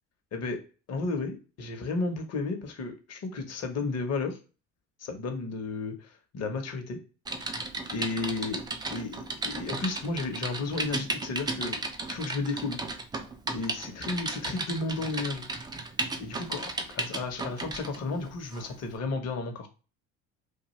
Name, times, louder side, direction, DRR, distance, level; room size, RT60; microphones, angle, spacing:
voice 1, 0.3-0.6 0.9-4.4 5.0-7.0 7.9-8.6 8.9-11.8 12.1-12.8 13.5-15.4 16.2-19.7, left 3 dB, 40° left, 5 dB, 0.8 m, -33 dB
Typing, 7.3-18.0 18.5-18.7, right 2 dB, 10° right, 0.3 m, -35 dB
2.4 x 2.3 x 3.0 m, 0.34 s
hypercardioid pair, 75°, 42 cm